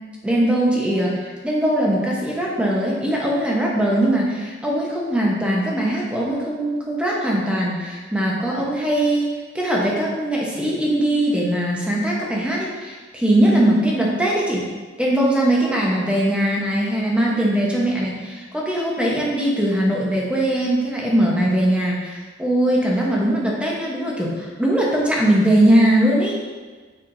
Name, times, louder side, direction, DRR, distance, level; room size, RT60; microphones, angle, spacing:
voice 1, 0.2-9.3 9.5-14.6 15.0-26.4, right 1 dB, 5° right, -4 dB, 1.1 m, -20 dB
7.2 x 5.9 x 2.7 m, 1.4 s
head